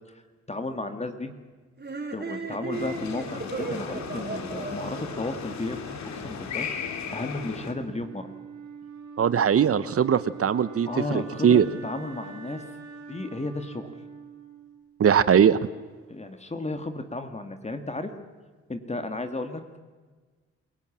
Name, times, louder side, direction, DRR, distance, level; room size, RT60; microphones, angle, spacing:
voice 1, 0.5-1.3 2.1-6.7 7.1-8.3 10.9-12.6 13.1-13.9 16.1-18.1 18.7-19.6, left 2 dB, 20° left, 7 dB, 2.2 m, -33 dB
sound 1, 1.8-6.4, right 3 dB, 35° right, 4.7 m, -36 dB
sound 2, 2.7-7.7, left 6 dB, 70° left, 2.5 m, -36 dB
Wind instrument woodwind instrument, 7.1-15.1, right 4 dB, 85° right, 6.7 m, -44 dB
voice 2, 9.2-11.7 15.0-15.6, right 8 dB, 50° right, 15 dB, 1.0 m, -20 dB
27.5 x 17.0 x 7.5 m, 1.4 s
supercardioid pair, 55°, 29 cm